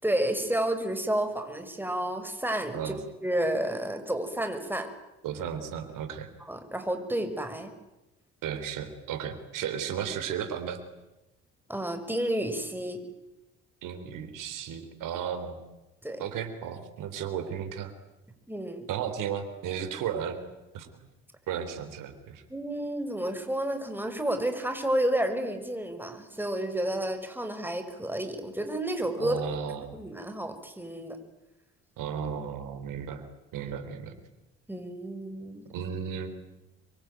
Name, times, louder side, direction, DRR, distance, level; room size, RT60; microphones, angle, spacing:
voice 1, 0.0-4.9 6.5-7.7 11.7-13.0 16.0-16.2 18.5-18.9 22.5-29.4 29.9-31.2 34.7-35.6, right 1 dB, 5° right, 7 dB, 6.2 m, -31 dB
voice 2, 5.2-6.3 8.4-10.8 13.8-15.6 16.2-17.9 18.9-20.4 20.7-21.1 21.5-22.4 29.2-30.0 32.0-33.2 33.5-34.2 35.7-36.3, right 8 dB, 75° right, 10 dB, 3.9 m, -34 dB
26.0 x 23.5 x 9.4 m, 1.0 s
hypercardioid pair, 55°, 32 cm